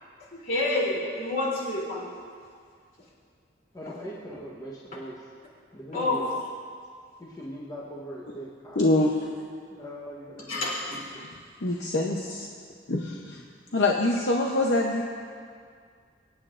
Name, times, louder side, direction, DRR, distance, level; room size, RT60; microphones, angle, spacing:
voice 1, 0.3-2.1 3.8-3.9 5.9-6.3 10.5-11.1, left 2 dB, 50° left, -6 dB, 3.2 m, -28 dB
voice 2, 3.7-5.2 5.7-6.3 7.2-8.8 9.7-10.6 11.1-11.3, equal, 20° left, -6 dB, 1.1 m, -40 dB
voice 3, 8.8-9.1 11.6-12.5 12.9-13.4 13.7-15.0, left 2 dB, 65° left, -1 dB, 0.8 m, -24 dB
24.0 x 8.9 x 2.5 m, 2.1 s
head